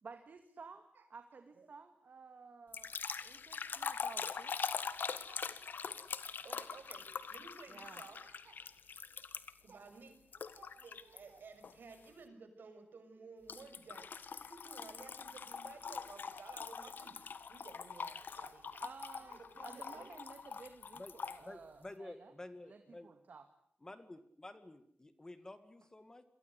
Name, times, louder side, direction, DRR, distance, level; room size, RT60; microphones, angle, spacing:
voice 1, 0.0-4.6 7.7-8.0 18.8-22.3 22.6-23.5, right 4 dB, 55° right, 7 dB, 2.2 m, -54 dB
sound 1, 2.7-9.7 10.3-11.2 11.6-11.9 13.5-21.4, left 6 dB, 75° left, 1.6 m, -43 dB
voice 2, 4.8-5.5 6.3-8.6 9.6-17.2 17.5-18.8 19.1-20.2, right 4 dB, 80° right, 7 dB, 6.2 m, -55 dB
voice 3, 21.4-23.1 23.8-26.2, left 2 dB, 20° left, 10 dB, 2.0 m, -51 dB
28.5 x 23.5 x 8.2 m, 0.68 s
wide cardioid pair, 165°, 3 cm